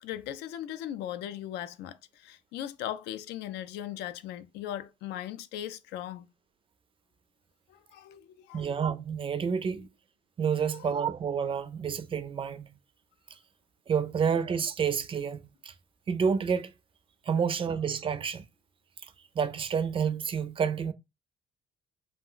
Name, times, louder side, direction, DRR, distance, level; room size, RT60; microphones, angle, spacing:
voice 1, 0.0-2.0 2.2-6.3 7.9-8.6 9.8-9.9 10.7-10.8, left 11 dB, 85° left, 0.4 m, -38 dB
voice 2, 8.5-9.9 10.4-12.7 13.9-15.7 16.1-16.7 17.3-18.5 19.0-20.9, right 6 dB, 30° right, 0.4 m, -29 dB
2.4 x 2.1 x 3.7 m
cardioid pair, 110°, 17 cm